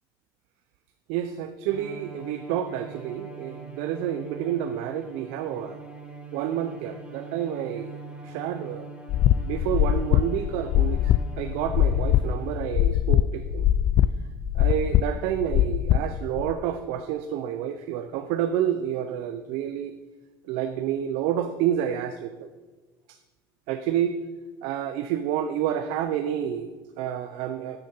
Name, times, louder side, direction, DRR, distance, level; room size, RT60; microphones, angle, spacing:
voice 1, 1.1-5.8 6.3-8.9 9.4-13.7 14.5-19.9 20.5-22.5 23.7-24.2 24.6-27.8, right 10 dB, 85° right, 8 dB, 0.6 m, -29 dB
Bowed string instrument, 1.7-12.9, right 4 dB, 10° right, 1.2 m, -43 dB
sound 1, 9.1-16.5, left 12 dB, 50° left, 0.4 m, -22 dB
9.3 x 7.0 x 5.5 m, 1.3 s
cardioid pair, 135°, 10 cm